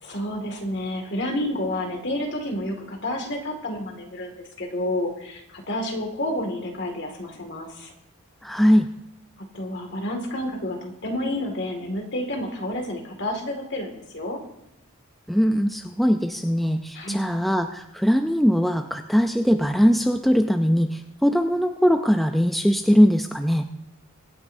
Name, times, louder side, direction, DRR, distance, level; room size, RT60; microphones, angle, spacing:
voice 1, 0.0-7.9 9.5-14.4 16.9-17.3, left 1 dB, 55° left, 2 dB, 2.1 m, -30 dB
voice 2, 8.4-8.9 15.3-23.6, equal, ahead, 6 dB, 0.4 m, -20 dB
23.5 x 9.6 x 2.7 m, 0.89 s
head